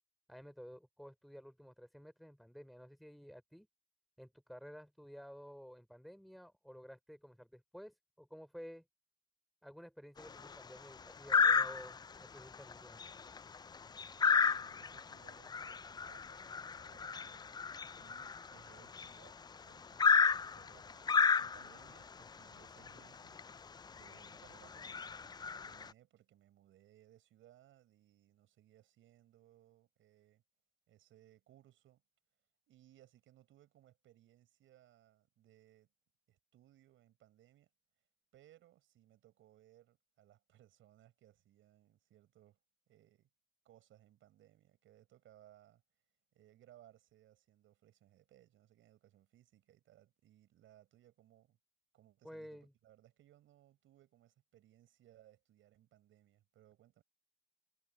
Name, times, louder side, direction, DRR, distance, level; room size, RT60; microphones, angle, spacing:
voice 1, 0.3-3.7 4.2-8.8 9.6-13.0 52.2-52.7, equal, ahead, 4.3 m, -53 dB
sound 1, 10.2-10.6 11.3-12.1 12.5-12.7 13.0-19.3 20.0-21.9 22.9-23.0 23.4-23.5 24.1-24.3 24.7-25.9, left 5 dB, 20° left, 0.3 m, -32 dB
voice 2, 14.1-23.4 23.9-30.4 30.9-32.0 32.7-35.9 36.3-37.7 38.3-42.6 42.9-43.3 43.6-45.8 46.3-51.6 51.9-57.0, right 13 dB, 80° right, 6.9 m, -65 dB
cardioid pair, 90°, 20 cm